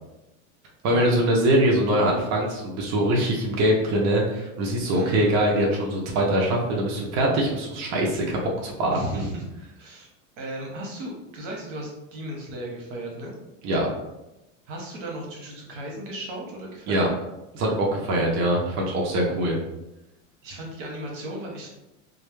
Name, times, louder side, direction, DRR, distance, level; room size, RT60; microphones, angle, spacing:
voice 1, 0.8-9.3 13.6-13.9 16.9-17.1 17.5-19.6, right 1 dB, 45° right, -1 dB, 0.6 m, -23 dB
voice 2, 4.9-5.3 8.9-9.4 9.8-10.1 10.4-13.3 14.7-17.1 18.2-18.7 20.4-21.7, right 1 dB, 80° right, -1 dB, 0.9 m, -35 dB
2.3 x 2.1 x 3.0 m, 0.95 s
supercardioid pair, 130°, 37 cm